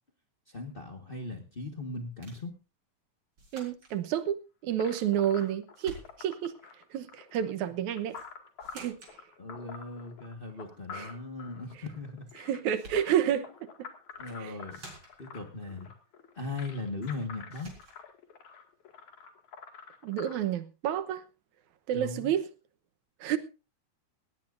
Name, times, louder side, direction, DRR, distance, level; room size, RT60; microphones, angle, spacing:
voice 1, 0.5-2.5 9.4-12.3 14.2-14.8 15.2-15.9 16.3-17.7 21.9-22.3, left 2 dB, 30° left, 1.0 m, -38 dB
sound 1, 2.2-2.5 3.4-4.0 5.0-5.5 5.7-6.4 8.1-8.3 8.6-9.2 12.3-12.4 12.7-13.2 14.1-14.4 14.7-15.3 17.0-17.2 17.5-18.0, right 2 dB, 40° right, 5.1 m, -50 dB
voice 2, 3.5-4.4 4.6-6.5 6.9-8.2 8.7-9.0 10.9-11.1 12.4-13.9 14.4-14.5 20.0-21.2 21.9-22.5 23.2-23.4, right 10 dB, 80° right, 2.4 m, -30 dB
sound 2, 4.8-20.4, left 6 dB, 75° left, 3.5 m, -48 dB
18.5 x 17.5 x 2.6 m
omnidirectional pair, 3.4 m